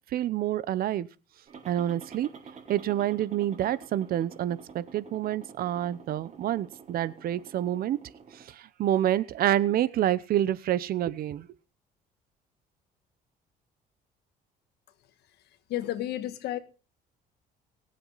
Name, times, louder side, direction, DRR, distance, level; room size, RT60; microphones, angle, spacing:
voice 1, 0.1-1.1 1.7-2.3 2.7-8.0 8.3-11.5, right 12 dB, 60° right, 0.9 m, -28 dB
sound 1, 1.5-8.4, right 5 dB, 40° right, 4.2 m, -49 dB
voice 2, 15.7-16.6, left 13 dB, 75° left, 1.5 m, -31 dB
23.0 x 7.9 x 4.1 m
cardioid pair, 110°, 17 cm